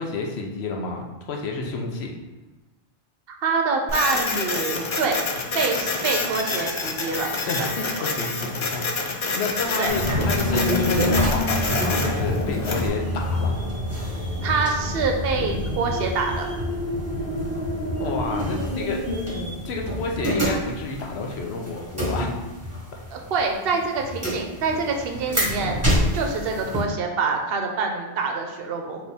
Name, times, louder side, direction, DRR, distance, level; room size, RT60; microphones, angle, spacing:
voice 1, 0.0-2.1 7.5-13.6 17.5-17.6 18.0-19.1 19.6-22.3 23.7-23.8 24.7-24.8, left 3 dB, 85° left, 1 dB, 0.9 m, -30 dB
voice 2, 3.4-5.3 5.5-7.5 9.8-9.9 14.4-16.5 23.1-25.8 26.1-29.0, right 4 dB, 70° right, 3 dB, 0.8 m, -25 dB
Printer, 3.9-12.9, left 3 dB, 50° left, 0.3 m, -28 dB
sound 1, 9.9-26.8, left 1 dB, 15° right, 1.4 m, -26 dB
4.0 x 2.9 x 3.4 m, 1.1 s
omnidirectional pair, 1.1 m